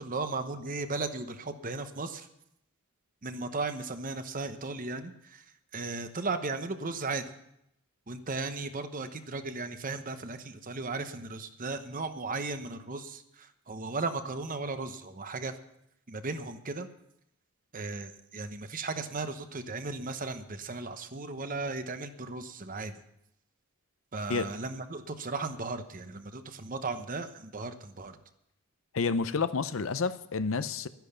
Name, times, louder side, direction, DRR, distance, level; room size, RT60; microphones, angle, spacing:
voice 1, 0.0-2.3 3.2-5.4 5.7-7.2 8.1-15.6 16.1-16.9 17.7-22.9 24.1-28.2, right 3 dB, 40° right, 9 dB, 0.9 m, -36 dB
voice 2, 28.9-30.9, left 4 dB, 65° left, 13 dB, 0.6 m, -29 dB
12.5 x 10.5 x 6.8 m, 0.80 s
head